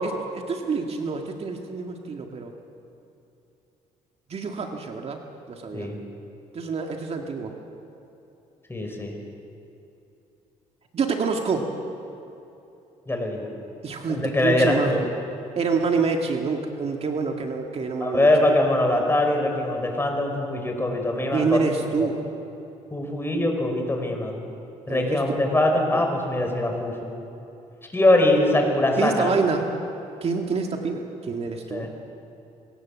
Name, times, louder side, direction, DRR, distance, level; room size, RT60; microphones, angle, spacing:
voice 1, 0.0-2.5 4.3-5.2 5.5-5.9 6.5-7.6 10.9-11.7 13.8-15.1 15.6-18.3 21.3-22.2 24.9-25.2 25.9-26.0 29.0-29.7 30.2-31.9, right 4 dB, 45° right, 3 dB, 2.1 m, -27 dB
voice 2, 8.7-9.1 13.1-13.5 14.1-15.0 18.0-21.6 22.0-22.1 22.9-24.4 24.9-27.1 27.9-29.3 31.7-31.9, left 1 dB, 15° left, 3 dB, 5.2 m, -22 dB
24.5 x 17.5 x 7.4 m, 2.9 s
cardioid pair, 80°, 14 cm